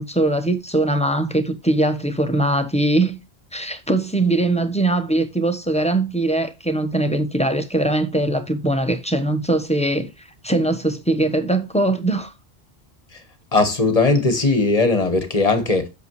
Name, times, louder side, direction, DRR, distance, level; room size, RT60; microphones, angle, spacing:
voice 1, 0.0-3.2 3.5-10.1 10.4-12.3, right 2 dB, 5° left, 0.8 m, -21 dB
voice 2, 13.5-15.9, left 3 dB, 35° left, 1.4 m, -18 dB
8.1 x 6.7 x 3.1 m
omnidirectional pair, 1.1 m